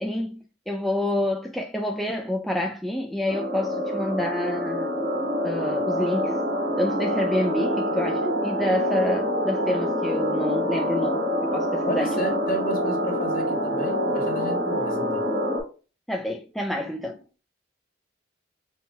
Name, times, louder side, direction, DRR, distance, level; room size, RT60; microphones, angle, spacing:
voice 1, 0.0-4.9 5.4-6.4 6.8-12.3 16.1-17.2, left 1 dB, ahead, 0.3 m, -28 dB
sound 1, 3.3-15.6, equal, 60° right, 1.6 m, -26 dB
voice 2, 11.9-15.2, equal, 45° left, 1.3 m, -31 dB
5.5 x 2.8 x 2.2 m
head